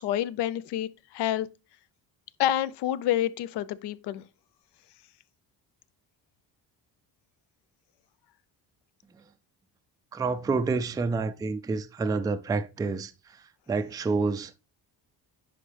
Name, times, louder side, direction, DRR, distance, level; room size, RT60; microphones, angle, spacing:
voice 1, 0.0-1.5 2.4-4.2, left 12 dB, 80° left, 0.6 m, -28 dB
voice 2, 10.1-13.1 13.7-14.5, right 4 dB, 10° right, 0.3 m, -28 dB
10.0 x 5.3 x 3.3 m
cardioid pair, 125°, 41 cm